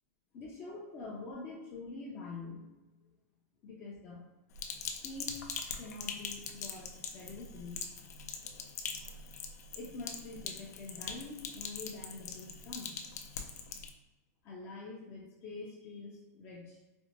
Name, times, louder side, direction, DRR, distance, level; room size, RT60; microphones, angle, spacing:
voice 1, 0.3-2.7 3.6-4.2 5.0-5.5 5.7-7.8 9.7-12.9 14.4-16.8, left 3 dB, 20° left, -4 dB, 0.4 m, -45 dB
Sink (filling or washing), 4.6-13.9, left 6 dB, 80° left, 0.5 m, -42 dB
4.1 x 2.1 x 2.8 m, 1.1 s
supercardioid pair, 180°, 9 cm